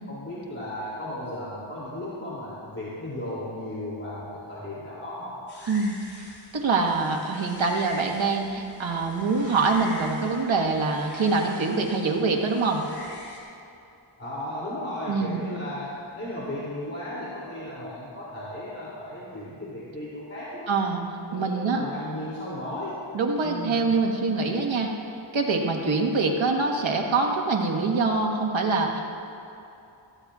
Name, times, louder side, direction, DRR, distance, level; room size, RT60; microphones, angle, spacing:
voice 1, 0.1-5.3 14.2-20.7 21.3-23.0 23.4-23.9, left 1 dB, 30° left, -9 dB, 3.0 m, -35 dB
sound 1, 5.5-13.4, left 1 dB, 50° left, 2.7 m, -44 dB
voice 2, 5.7-12.8 15.1-15.4 20.7-21.0 21.3-21.8 23.1-24.9 25.3-29.0, right 3 dB, 70° right, 1 dB, 1.6 m, -25 dB
18.0 x 14.5 x 2.4 m, 2.7 s
wide cardioid pair, 80°, 49 cm